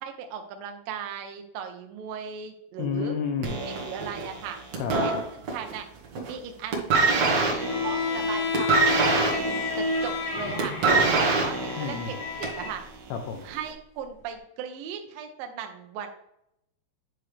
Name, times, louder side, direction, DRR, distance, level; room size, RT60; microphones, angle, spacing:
voice 1, 0.0-3.2 3.6-4.6 5.0-5.1 5.5-5.9 6.3-7.1 7.5-10.7 11.2-12.8 13.4-16.1, right 7 dB, 85° right, 5 dB, 2.0 m, -37 dB
voice 2, 2.8-3.6 4.8-5.0 11.0-11.2 11.8-12.2 13.1-13.5, left 6 dB, 80° left, 5 dB, 2.4 m, -31 dB
sound 1, 3.4-5.8 6.0-6.4 6.7-12.7 13.5-13.6, right 3 dB, 70° right, 1.6 m, -25 dB
Bowed string instrument, 7.6-12.8, left 4 dB, 50° left, 1.9 m, -30 dB
9.6 x 4.9 x 3.3 m, 0.76 s
omnidirectional pair, 5.2 m